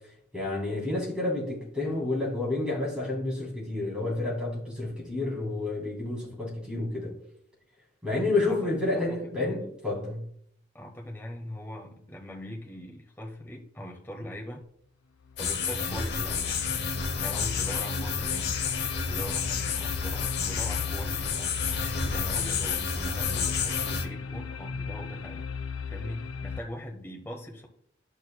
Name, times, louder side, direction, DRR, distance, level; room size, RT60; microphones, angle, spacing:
voice 1, 0.3-7.1 8.0-10.2, left 2 dB, 5° right, 3.2 m, -30 dB
voice 2, 8.9-9.7 10.7-14.6 15.4-16.5 17.2-18.6 19.0-21.5 22.1-25.5 25.9-27.7, equal, 10° left, 1.0 m, -41 dB
sound 1, 14.6-14.7 15.2-26.6, left 5 dB, 80° left, 0.4 m, -37 dB
sound 2, 15.4-24.1, left 5 dB, 55° left, 0.9 m, -30 dB
11.0 x 6.6 x 2.2 m
head